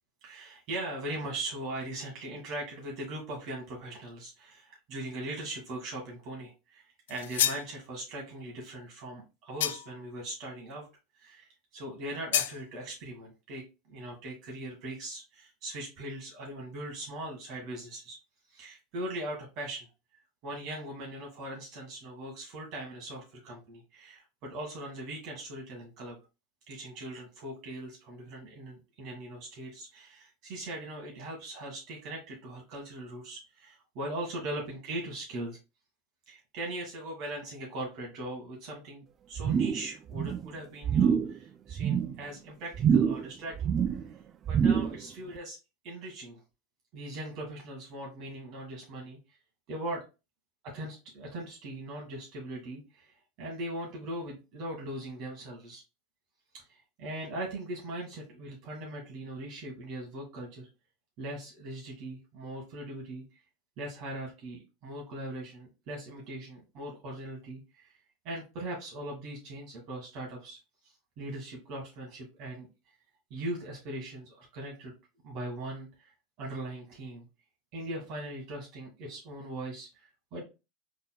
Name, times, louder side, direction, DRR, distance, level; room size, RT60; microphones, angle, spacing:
voice 1, 0.2-10.9 11.2-18.2 18.5-19.9 20.4-26.2 26.7-35.6 36.3-43.7 44.5-45.6 45.8-46.4 46.9-49.2 49.7-50.0 50.6-55.8 56.5-60.7 61.2-63.2 63.8-67.9 68.2-70.6 70.8-72.7 73.3-74.9 75.2-77.3 77.7-80.4, right 1 dB, 55° right, -1 dB, 1.8 m, -40 dB
sound 1, 7.1-7.7 9.6-10.0 12.3-12.6, left 11 dB, 85° left, 0.3 m, -29 dB
sound 2, 39.4-39.9 40.1-40.5 40.8-41.3 41.7-42.2 42.7-43.3 43.6-44.1 44.5-45.0 45.4-45.5, right 7 dB, 35° right, 0.4 m, -26 dB
3.9 x 3.8 x 2.3 m, 0.27 s
supercardioid pair, 110°, 0 cm